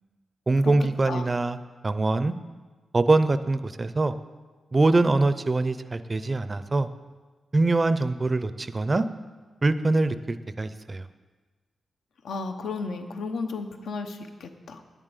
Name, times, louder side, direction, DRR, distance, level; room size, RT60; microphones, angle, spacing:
voice 1, 0.5-1.6 1.8-2.3 2.9-4.1 4.7-6.9 7.5-9.1 9.6-11.1, right 2 dB, 25° right, 12 dB, 0.5 m, -23 dB
voice 2, 12.2-15.0, left 4 dB, 90° left, 6 dB, 1.0 m, -34 dB
9.8 x 7.5 x 8.2 m, 1.3 s
wide cardioid pair, 155°, 0 cm